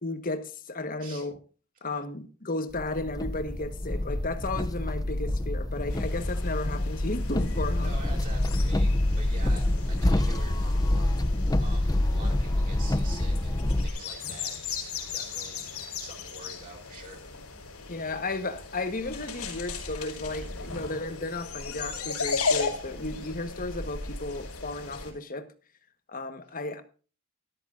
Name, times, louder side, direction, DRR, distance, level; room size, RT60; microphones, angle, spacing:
voice 1, 0.0-1.4 1.8-7.9 17.9-25.5 26.1-26.8, left 2 dB, 40° left, 1.4 m, -34 dB
sound 1, 2.7-13.9, left 1 dB, 15° left, 0.6 m, -27 dB
sound 2, 5.9-25.1, left 4 dB, 90° left, 5.0 m, -37 dB
voice 2, 7.8-11.2 11.6-17.2 17.9-18.0, right 2 dB, 40° right, 5.4 m, -46 dB
13.5 x 13.5 x 2.6 m
head